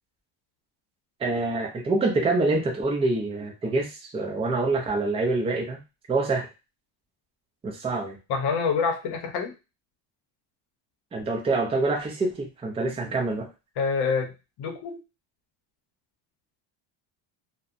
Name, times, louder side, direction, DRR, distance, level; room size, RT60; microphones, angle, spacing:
voice 1, 1.2-5.8 6.1-6.5 7.6-8.2 11.1-13.5, right 3 dB, 15° right, 1 dB, 0.4 m, -26 dB
voice 2, 8.3-9.5 13.8-15.0, left 5 dB, 55° left, 4 dB, 0.7 m, -27 dB
2.7 x 2.1 x 2.4 m, 0.27 s
cardioid pair, 140°, 47 cm